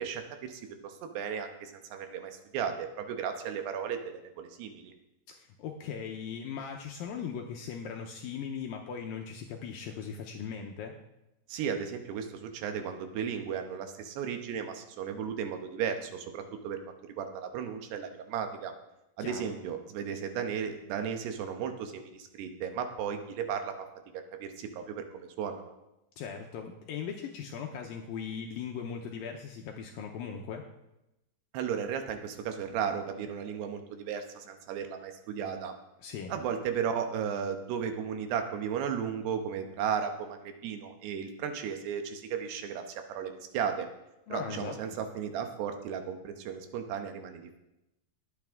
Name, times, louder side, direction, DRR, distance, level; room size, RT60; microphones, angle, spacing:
voice 1, 0.0-4.9 11.5-18.7 19.2-23.7 24.4-25.7 31.5-35.8 36.3-43.9 44.3-47.6, right 7 dB, 80° right, 6 dB, 3.1 m, -35 dB
voice 2, 5.3-10.9 19.2-19.4 26.2-30.6 36.0-36.3 44.3-44.7, left 7 dB, 75° left, 2 dB, 2.2 m, -39 dB
19.5 x 8.7 x 3.6 m, 0.91 s
omnidirectional pair, 4.8 m